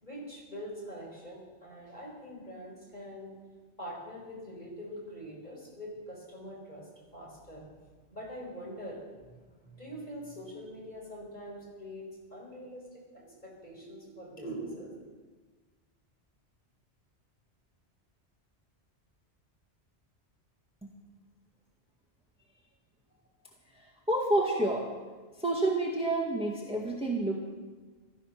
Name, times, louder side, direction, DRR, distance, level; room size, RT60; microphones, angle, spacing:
voice 1, 0.0-3.3 3.8-7.7 8.1-12.0 12.3-12.8 13.1-14.9, equal, 40° left, -3 dB, 4.8 m, -44 dB
voice 2, 24.1-24.9 25.4-27.5, right 2 dB, 5° right, -2 dB, 1.8 m, -28 dB
15.5 x 13.0 x 6.0 m, 1.4 s
omnidirectional pair, 1.2 m